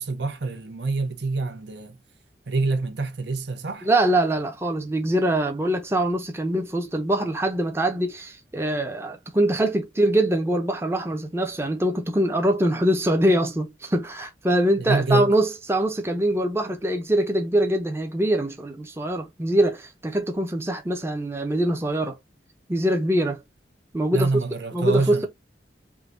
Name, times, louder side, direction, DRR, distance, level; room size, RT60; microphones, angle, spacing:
voice 1, 0.0-1.9 2.5-3.9 14.8-15.3 24.1-25.3, right 3 dB, 70° right, 0.8 m, -26 dB
voice 2, 3.8-22.2 22.7-23.4 23.9-25.3, right 1 dB, 15° right, 0.6 m, -23 dB
3.8 x 2.7 x 3.8 m
head